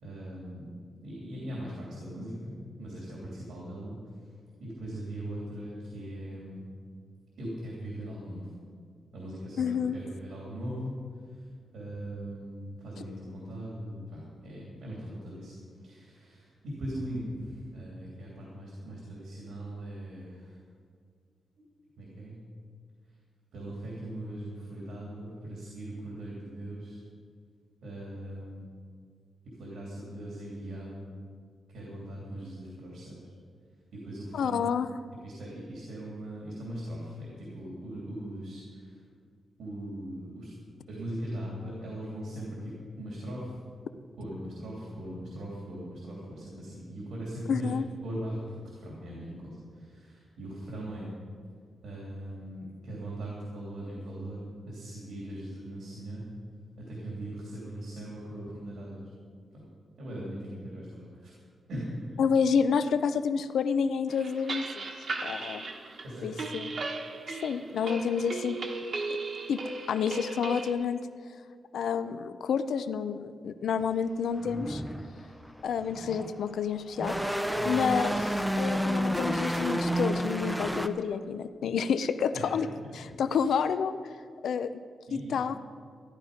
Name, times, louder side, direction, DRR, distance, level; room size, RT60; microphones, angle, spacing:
voice 1, 0.0-0.7 1.0-4.3 4.6-6.6 7.4-8.5 9.1-11.0 11.3-11.4 11.7-15.5 15.8-20.6 21.6-21.7 22.0-22.4 23.5-27.0 27.8-28.6 29.4-31.1 31.7-33.2 33.9-34.7 35.2-39.0 39.6-40.5 40.9-43.6 44.2-47.7 48.0-51.1 51.8-56.3 56.8-59.0 59.5-59.7 60.0-61.3 61.7-62.2 66.0-66.3 77.5-77.7 82.3-83.5 85.1-85.4, right 1 dB, 85° right, -4 dB, 3.0 m, -40 dB
voice 2, 9.6-10.0 13.1-13.2 34.3-34.9 47.5-47.8 62.2-64.8 65.2-65.6 66.2-66.7 67.3-68.6 69.5-69.6 69.9-71.0 71.7-74.8 75.6-82.7 82.9-84.0 84.4-84.7 85.1-85.6, left 6 dB, 75° left, 11 dB, 0.5 m, -29 dB
sound 1, 64.1-70.7, right 3 dB, 45° right, 1.2 m, -37 dB
sound 2, 73.8-73.9 74.4-76.5 76.9-80.9, equal, ahead, 0.5 m, -30 dB
14.0 x 11.5 x 5.1 m, 2.1 s
wide cardioid pair, 180°, 0 cm